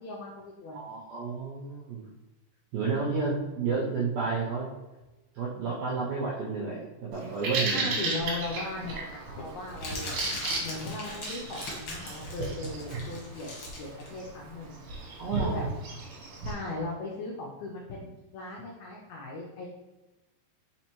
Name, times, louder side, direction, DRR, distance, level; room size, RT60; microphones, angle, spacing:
voice 1, 0.0-0.9 7.7-10.2 10.6-13.5 13.8-14.8 15.3-15.6 16.4-19.7, left 2 dB, 85° left, -2 dB, 1.6 m, -38 dB
voice 2, 0.7-2.0 2.7-4.7 5.3-7.9 15.2-15.7, right 4 dB, 80° right, -4 dB, 1.6 m, -31 dB
Bird vocalization bird call bird song, 7.1-16.5, right 3 dB, 65° right, 1.7 m, -35 dB
Crumpling crinkling, 8.3-15.3, left 1 dB, 60° left, 1.5 m, -40 dB
4.3 x 4.2 x 3.0 m, 1.1 s
omnidirectional pair, 4.0 m